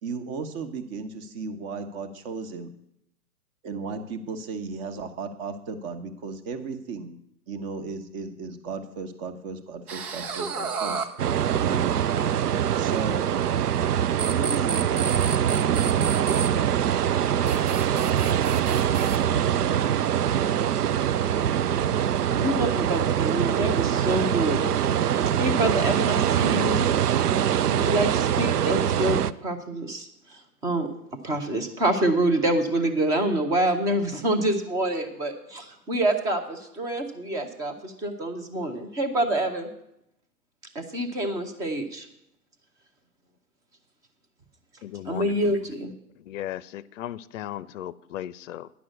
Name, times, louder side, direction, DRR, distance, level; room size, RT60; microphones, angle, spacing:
voice 1, 0.0-2.7 3.6-7.2 7.5-11.1 11.7-12.0 12.8-13.3 14.3-15.0, right 4 dB, 35° right, 8 dB, 1.2 m, -35 dB
sound 1, 9.9-12.2 13.4-13.9 14.2-16.5 17.5-19.2, right 5 dB, 70° right, 1.3 m, -32 dB
sound 2, 11.2-29.3, right 9 dB, 85° right, 0.5 m, -23 dB
voice 2, 22.4-24.7 25.0-26.9 27.7-30.9 31.2-39.7 40.7-42.1 45.1-45.9, right 1 dB, 10° right, 7 dB, 0.4 m, -26 dB
voice 3, 44.8-45.6 46.2-48.7, left 12 dB, 55° left, 19 dB, 0.5 m, -36 dB
10.5 x 6.1 x 7.9 m, 0.81 s
hypercardioid pair, 120°, 45 cm